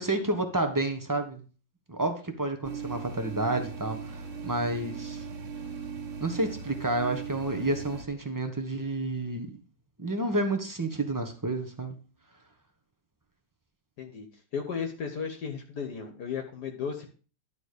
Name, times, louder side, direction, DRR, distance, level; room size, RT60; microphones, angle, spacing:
voice 1, 0.0-1.4 1.9-5.2 6.2-9.5 10.0-12.0, right 2 dB, 20° right, 6 dB, 0.6 m, -30 dB
sound 1, 2.6-8.0, right 6 dB, 55° right, 0.9 m, -38 dB
voice 2, 14.5-17.1, left 6 dB, 60° left, 4 dB, 1.5 m, -34 dB
11.0 x 3.9 x 6.6 m, 0.37 s
omnidirectional pair, 2.1 m